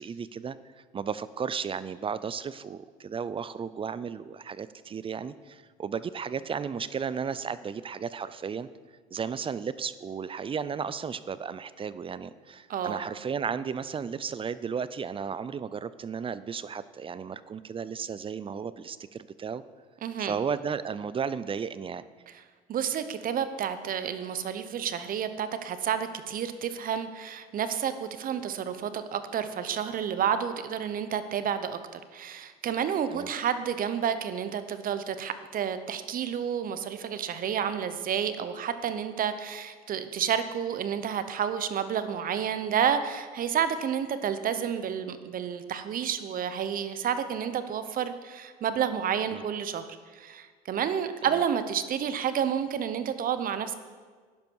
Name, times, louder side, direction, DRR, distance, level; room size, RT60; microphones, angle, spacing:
voice 1, 0.0-8.7 9.1-19.6 20.2-22.0 33.1-33.3 49.3-49.4, right 6 dB, 30° right, 16 dB, 0.5 m, -34 dB
voice 2, 12.7-13.0 20.0-20.4 22.7-53.7, right 8 dB, 50° right, 11 dB, 1.0 m, -30 dB
12.5 x 10.5 x 4.7 m, 1.5 s
supercardioid pair, 85°, 19 cm